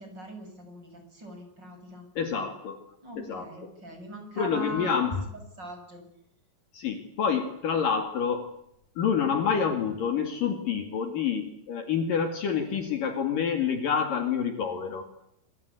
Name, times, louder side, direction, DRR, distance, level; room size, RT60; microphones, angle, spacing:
voice 1, 0.0-2.1 3.0-5.0 5.6-6.0, right 1 dB, 25° right, 5 dB, 7.5 m, -41 dB
voice 2, 2.2-2.8 3.2-3.5 4.4-5.2 6.7-8.5 9.0-15.0, left 7 dB, 55° left, 6 dB, 3.6 m, -27 dB
27.0 x 24.5 x 8.3 m, 0.77 s
omnidirectional pair, 4.8 m